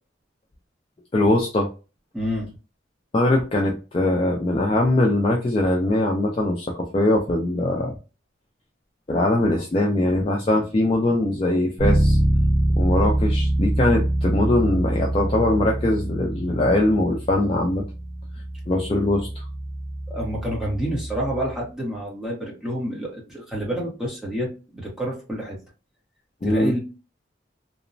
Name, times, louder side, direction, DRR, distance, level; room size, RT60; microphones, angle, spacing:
voice 1, 1.1-1.7 3.1-7.9 9.1-12.2 12.8-17.8 18.7-19.4 26.4-26.7, left 1 dB, 30° left, 0 dB, 0.3 m, -21 dB
voice 2, 2.1-2.5 20.1-25.6 26.4-26.8, equal, 5° right, -4 dB, 0.8 m, -28 dB
Bass guitar, 11.8-21.6, right 1 dB, 55° right, 1.0 m, -24 dB
2.9 x 2.0 x 2.5 m, 0.32 s
head